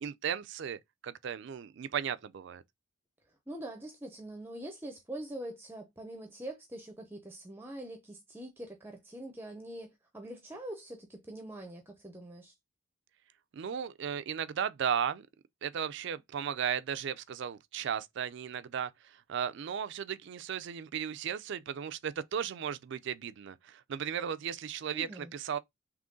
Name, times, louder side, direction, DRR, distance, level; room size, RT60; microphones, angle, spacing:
voice 1, 0.0-2.6 13.5-15.3 15.6-18.9 19.3-25.6, right 8 dB, 60° right, 0.3 m, -35 dB
voice 2, 3.5-12.5 24.9-25.3, right 1 dB, 10° right, 0.6 m, -44 dB
3.7 x 3.0 x 3.7 m
head